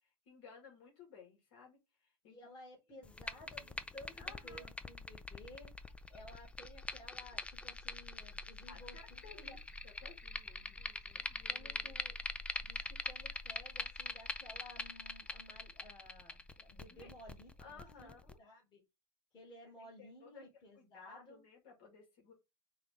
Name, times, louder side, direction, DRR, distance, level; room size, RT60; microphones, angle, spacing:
voice 1, 0.0-2.4 2.9-3.0 4.1-4.7 6.3-6.4 8.7-12.0 16.9-17.1 17.6-18.4 19.8-20.4 20.8-22.3, left 5 dB, 65° left, 2.4 m, -58 dB
voice 2, 2.2-5.7 6.1-9.6 10.6-11.0 11.5-12.1 12.7-18.1 18.4-18.8 19.3-21.4, left 1 dB, 35° left, 2.6 m, -56 dB
sound 1, 3.0-18.3, left 3 dB, 10° left, 0.3 m, -44 dB
4.7 x 2.8 x 3.5 m
supercardioid pair, 115°, 14 cm